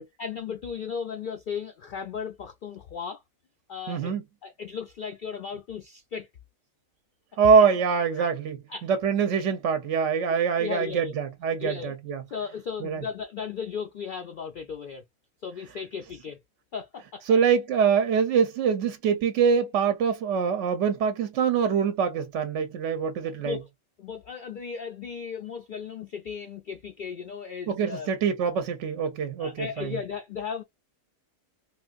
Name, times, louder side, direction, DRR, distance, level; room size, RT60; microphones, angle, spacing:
voice 1, 0.0-3.2 3.7-4.1 4.4-6.3 7.5-7.7 8.2-8.3 8.7-8.9 10.3-11.1 11.6-11.9 12.3-15.0 15.4-16.4 16.7-17.2 23.4-23.7 24.0-28.1 29.4-30.6, left 6 dB, 80° left, 0.4 m, -36 dB
voice 2, 3.9-4.2 7.4-8.6 9.0-12.2 12.8-13.0 17.3-23.6 27.7-29.9, right 6 dB, 65° right, 0.9 m, -24 dB
3.7 x 2.5 x 2.3 m
omnidirectional pair, 1.4 m